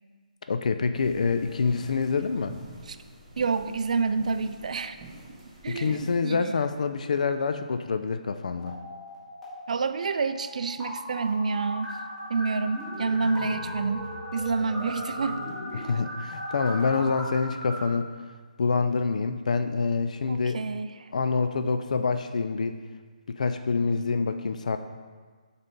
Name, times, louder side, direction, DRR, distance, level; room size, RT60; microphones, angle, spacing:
voice 1, 0.5-2.5 5.7-8.7 15.7-18.1 18.6-20.6 21.1-22.7 23.3-24.8, left 4 dB, 60° left, 8 dB, 0.4 m, -26 dB
sound 1, 0.9-6.1, right 2 dB, 25° right, 1.7 m, -47 dB
voice 2, 3.4-4.9 5.6-6.6 9.7-11.9 12.3-15.4 15.7-15.9 20.3-21.1, right 4 dB, 60° right, 11 dB, 0.4 m, -28 dB
sound 2, 8.5-9.5 9.8-17.8, equal, 5° left, 2.0 m, -37 dB
8.6 x 4.0 x 3.7 m, 1.5 s
figure-of-eight pair, 150°, 4 cm